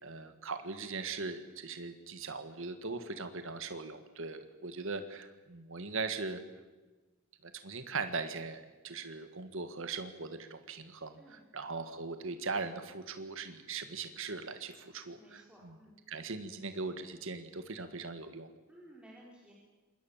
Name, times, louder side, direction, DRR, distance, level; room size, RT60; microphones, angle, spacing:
voice 1, 0.0-6.4 7.4-15.8 16.1-18.5, right 4 dB, 65° right, 8 dB, 1.7 m, -40 dB
voice 2, 15.2-15.9 18.7-19.5, right 1 dB, 5° right, -4 dB, 4.7 m, -56 dB
26.5 x 21.5 x 7.3 m, 1.2 s
head